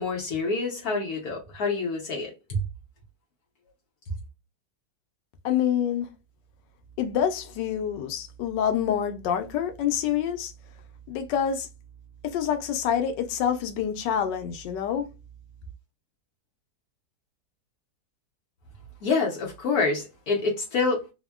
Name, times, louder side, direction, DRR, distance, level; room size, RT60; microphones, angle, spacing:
voice 1, 0.0-2.6 19.0-21.0, left 4 dB, 65° left, 1.2 m, -27 dB
voice 2, 5.4-6.1 7.0-10.5 11.1-11.7 12.2-15.1, left 9 dB, 85° left, 1.2 m, -27 dB
3.5 x 2.1 x 2.3 m
omnidirectional pair, 1.9 m